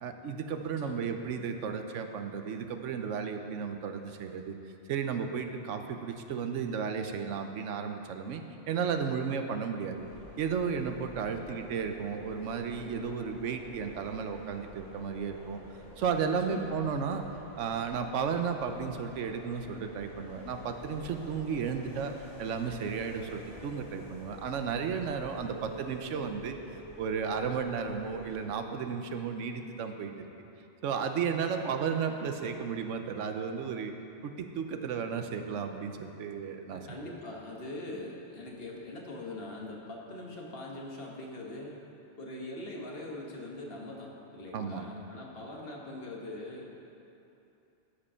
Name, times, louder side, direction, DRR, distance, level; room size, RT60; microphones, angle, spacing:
voice 1, 0.0-4.6 4.9-10.0 10.4-15.6 16.0-17.2 17.6-22.1 22.4-30.1 30.8-33.9 34.2-36.8 44.5-44.8, right 6 dB, 80° right, 6 dB, 1.0 m, -33 dB
sound 1, 10.0-28.5, left 1 dB, 90° left, 1.8 m, -49 dB
voice 2, 11.2-11.6 16.5-16.7 25.4-25.6 36.7-41.7 42.2-46.7, left 2 dB, 55° left, -2 dB, 1.5 m, -42 dB
13.0 x 5.3 x 5.5 m, 2.8 s
omnidirectional pair, 1.2 m